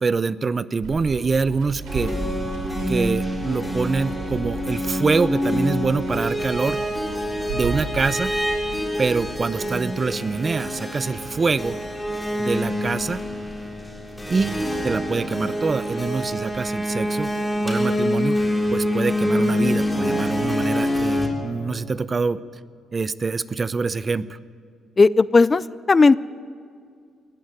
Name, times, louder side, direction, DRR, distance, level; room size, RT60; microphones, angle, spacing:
voice 1, 0.0-2.1 2.9-6.8 7.5-8.3 9.0-11.8 12.4-13.2 14.3-14.5 14.8-17.3 17.6-18.4 18.7-22.4 22.9-24.4, right 4 dB, 35° right, 17 dB, 0.6 m, -25 dB
Water, 0.8-8.8, right 3 dB, 90° right, 3.2 m, -35 dB
sound 1, 1.9-21.3, left 1 dB, 10° left, 3.5 m, -26 dB
voice 2, 25.0-26.2, left 4 dB, 30° left, 19 dB, 0.4 m, -15 dB
19.5 x 14.5 x 9.5 m, 2.3 s
cardioid pair, 90°, 0 cm